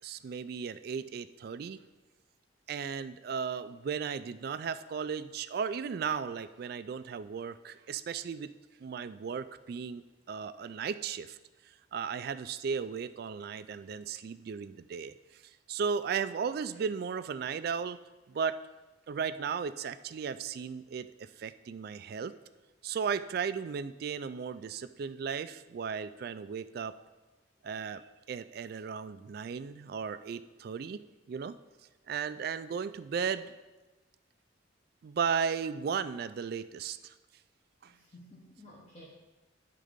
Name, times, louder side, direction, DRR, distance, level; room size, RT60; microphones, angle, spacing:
voice 1, 0.0-1.8 2.7-8.5 8.8-11.4 11.9-15.4 15.7-18.0 18.3-18.6 19.1-22.3 22.8-27.0 27.6-31.6 32.1-33.5 35.0-37.1 37.8-37.9, right 6 dB, 55° right, 13 dB, 0.3 m, -35 dB
voice 2, 37.8-39.1, left 1 dB, 35° left, -4 dB, 1.0 m, -53 dB
11.0 x 3.7 x 5.1 m, 1.2 s
head